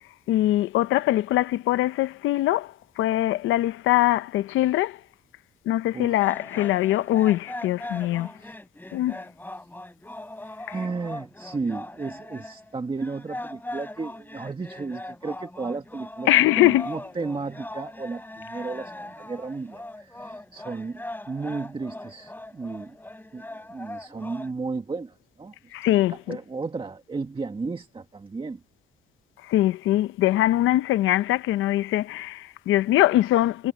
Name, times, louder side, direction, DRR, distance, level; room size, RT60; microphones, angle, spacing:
voice 1, 0.3-5.0 5.7-8.3 8.9-9.2 16.3-16.9 25.7-26.4 29.4-33.7, left 15 dB, 90° left, 0.7 m, -22 dB
sound 1, 6.2-24.5, left 1 dB, 10° left, 6.7 m, -40 dB
voice 2, 10.7-23.0 23.3-25.7 26.1-28.6, right 4 dB, 25° right, 1.7 m, -34 dB
cardioid pair, 90°, 20 cm